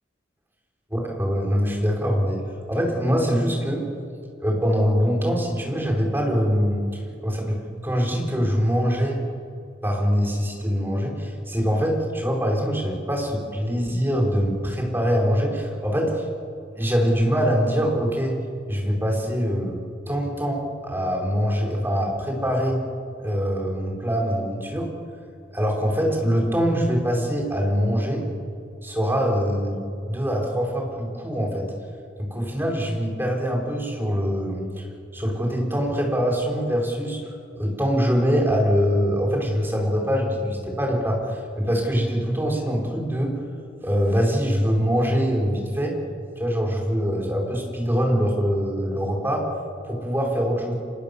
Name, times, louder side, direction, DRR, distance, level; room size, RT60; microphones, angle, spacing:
voice 1, 0.9-2.4 2.7-3.8 4.4-9.2 9.8-16.2 16.7-18.4 18.7-22.8 23.2-24.9 25.5-28.2 28.8-31.7 32.2-34.8 35.1-43.4 43.8-46.0 46.4-49.4 49.8-50.7, equal, 10° right, 0 dB, 5.0 m, -23 dB
30.0 x 26.0 x 7.0 m, 2.5 s
head